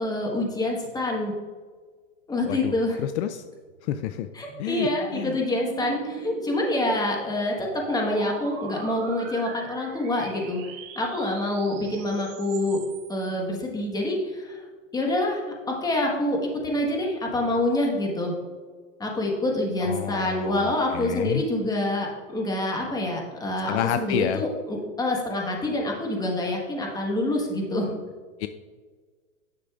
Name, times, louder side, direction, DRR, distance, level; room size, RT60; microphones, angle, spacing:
voice 1, 0.0-1.3 2.3-3.0 4.3-10.6 10.9-12.8 13.1-14.6 14.9-16.4 16.6-18.3 19.0-27.9, left 1 dB, 10° left, 0 dB, 1.3 m, -26 dB
voice 2, 2.5-3.4 3.8-4.3 4.6-5.3 19.8-21.4 23.7-24.4 28.4-28.5, left 10 dB, 60° left, 10 dB, 0.5 m, -29 dB
sound 1, 3.6-13.3, right 6 dB, 50° right, 1.1 m, -41 dB
10.0 x 6.6 x 2.4 m, 1.5 s
hypercardioid pair, 125°, 40 cm